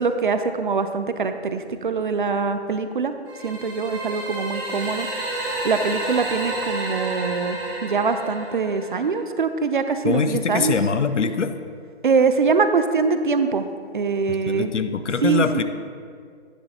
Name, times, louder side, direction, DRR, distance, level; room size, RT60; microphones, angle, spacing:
voice 1, 0.0-3.1 3.4-5.1 5.6-10.7 12.0-13.7 13.9-14.7 15.2-15.4, right 5 dB, 45° right, 9 dB, 0.4 m, -23 dB
sound 1, 3.3-9.2, right 1 dB, 20° right, 1.3 m, -30 dB
voice 2, 10.0-11.5 14.5-15.6, left 5 dB, 90° left, 9 dB, 0.6 m, -23 dB
9.6 x 6.5 x 2.8 m, 2.1 s
figure-of-eight pair, 150°, 35 cm